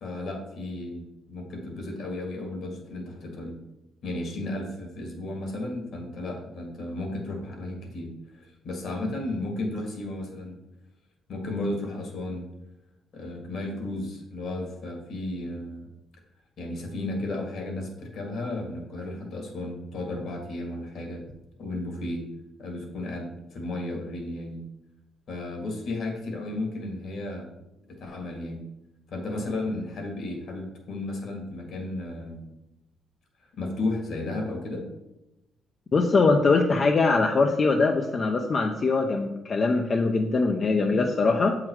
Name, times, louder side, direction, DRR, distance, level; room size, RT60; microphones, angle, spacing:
voice 1, 0.0-3.6 4.0-10.6 11.3-12.5 13.1-15.8 16.6-21.2 21.6-22.3 22.6-24.7 25.3-27.5 27.9-28.7 29.1-32.5 33.4-34.9, left 2 dB, 70° left, 2 dB, 1.8 m, -34 dB
voice 2, 35.9-41.6, left 3 dB, 40° left, 2 dB, 0.6 m, -22 dB
7.5 x 3.9 x 4.6 m, 0.92 s
cardioid pair, 90°, 0 cm